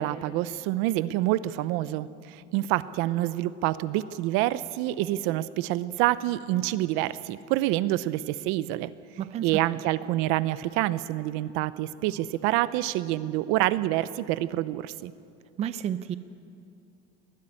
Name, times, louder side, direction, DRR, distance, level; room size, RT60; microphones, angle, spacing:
voice 1, 0.0-8.9 9.4-15.1, right 15 dB, 65° right, 16 dB, 0.7 m, -27 dB
voice 2, 9.2-9.8 15.6-16.2, right 10 dB, 30° right, 13 dB, 0.6 m, -31 dB
20.0 x 15.0 x 9.9 m, 2.5 s
cardioid pair, 165°, 21 cm